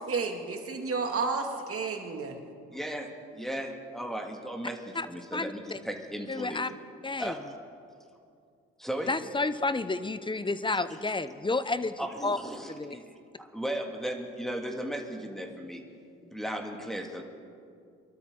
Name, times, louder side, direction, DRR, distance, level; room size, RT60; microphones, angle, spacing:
voice 1, 0.1-2.4, right 4 dB, 50° right, 3 dB, 2.2 m, -31 dB
voice 2, 2.7-6.6 7.2-7.4 8.8-9.1 12.0-15.8 16.2-17.2, right 1 dB, ahead, 2 dB, 2.0 m, -36 dB
voice 3, 5.3-5.8 6.3-6.7 7.0-7.3 9.1-11.9 12.2-12.4 12.8-13.0, left 3 dB, 15° left, 14 dB, 0.7 m, -30 dB
23.5 x 12.5 x 3.7 m, 2.3 s
supercardioid pair, 55°, 30 cm